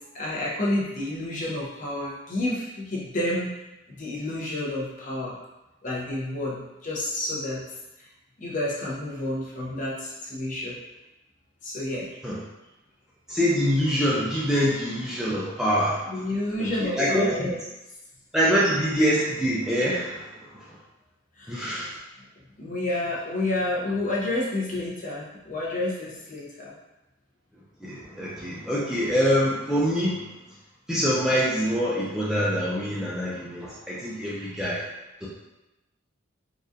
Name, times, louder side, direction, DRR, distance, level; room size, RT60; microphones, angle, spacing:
voice 1, 0.1-3.5 4.0-5.4 5.8-7.6 8.4-10.8 11.6-12.1 16.1-17.6 21.4-21.6 22.6-26.7, left 1 dB, 40° left, -5 dB, 0.7 m, -29 dB
voice 2, 13.3-16.0 16.6-17.5 18.3-20.8 21.5-22.0 27.8-30.3 30.9-34.8 35.2-35.3, equal, 5° right, -8 dB, 0.4 m, -25 dB
4.0 x 2.4 x 2.5 m, 0.97 s
head